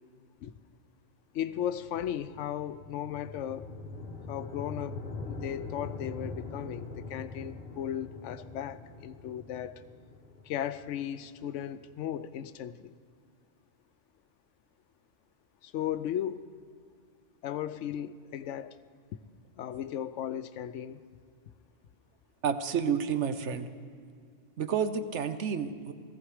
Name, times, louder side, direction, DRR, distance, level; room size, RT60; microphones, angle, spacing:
voice 1, 1.3-3.7 4.3-5.0 5.3-9.8 10.4-12.9 15.6-16.5 17.4-18.8 19.6-21.0, left 10 dB, 80° left, 14 dB, 0.9 m, -36 dB
sound 1, 1.7-11.9, left 3 dB, 50° left, 1.2 m, -43 dB
voice 2, 22.4-23.7 24.6-25.9, right 7 dB, 70° right, 10 dB, 1.1 m, -30 dB
17.5 x 14.5 x 4.9 m, 2.2 s
omnidirectional pair, 1.3 m